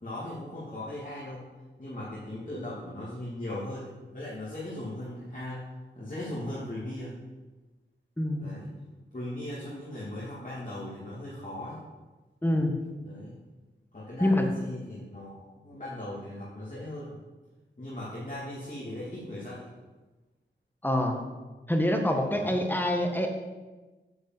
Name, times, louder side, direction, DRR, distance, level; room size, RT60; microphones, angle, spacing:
voice 1, 0.0-1.4 1.8-7.1 8.4-8.7 9.1-11.8 13.0-13.4 13.9-17.2 17.8-19.7 22.2-22.6, left 1 dB, 40° left, -8 dB, 2.8 m, -38 dB
voice 2, 8.2-8.5 12.4-12.8 14.2-14.5 20.8-21.2 21.7-23.3, left 1 dB, 10° left, 3 dB, 1.6 m, -26 dB
9.6 x 5.3 x 7.9 m, 1.2 s
wide cardioid pair, 65°, 20 cm